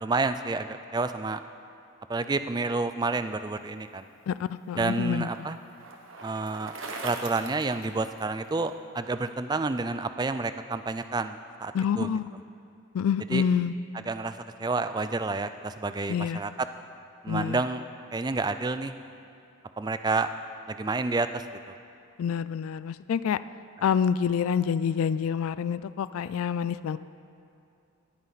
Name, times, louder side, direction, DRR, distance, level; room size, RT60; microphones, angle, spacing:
voice 1, 0.0-1.4 2.1-4.1 4.7-5.6 6.2-6.7 7.0-12.1 13.3-13.4 13.9-16.7 17.2-17.8 18.1-18.9 19.8-20.3 20.7-21.7, right 3 dB, 20° right, 10 dB, 0.3 m, -29 dB
Bicycle, 4.2-8.6, right 3 dB, 70° right, 1.3 m, -42 dB
voice 2, 4.3-5.3 11.7-12.3 12.9-13.7 16.1-16.4 17.3-17.6 22.2-23.4 23.8-27.0, left 7 dB, 90° left, 16 dB, 0.3 m, -27 dB
18.5 x 9.5 x 4.0 m, 2.5 s
head